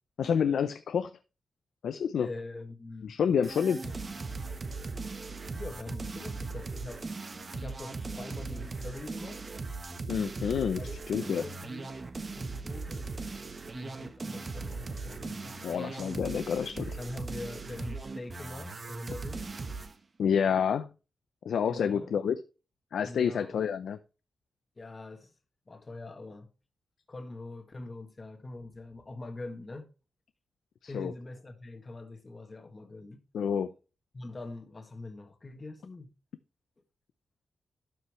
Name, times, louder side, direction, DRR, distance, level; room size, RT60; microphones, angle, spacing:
voice 1, 0.2-1.1 1.8-2.3 3.0-3.8 10.1-11.4 15.6-17.0 20.2-20.9 21.4-22.4 22.9-24.0 30.8-31.1 33.3-33.7, left 7 dB, 90° left, 0.6 m, -28 dB
voice 2, 2.2-3.2 3.8-3.9 5.5-7.1 7.5-9.5 10.4-11.9 12.4-13.3 13.7-15.8 17.0-19.5 21.6-22.2 23.0-23.6 24.8-25.3 25.7-26.5 27.1-29.9 30.9-33.2 34.1-36.1, left 2 dB, 30° left, 1.8 m, -43 dB
sound 1, 3.4-19.9, right 3 dB, 35° right, 1.2 m, -39 dB
12.5 x 5.7 x 3.2 m
wide cardioid pair, 120°, 0 cm